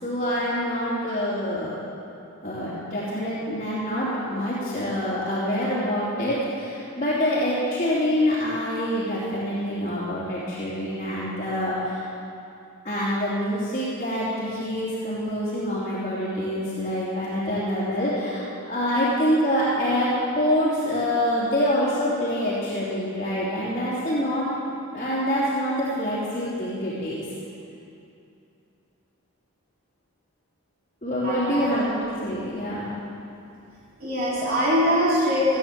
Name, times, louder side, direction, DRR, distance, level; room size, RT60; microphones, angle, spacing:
voice 1, 0.0-1.7 2.4-12.0 12.8-24.5 24.9-27.2 31.0-32.9, equal, 30° left, -11 dB, 3.0 m, -26 dB
voice 2, 31.2-31.7 34.0-35.6, equal, 40° right, -8 dB, 3.4 m, -22 dB
16.0 x 9.2 x 7.5 m, 2.7 s
head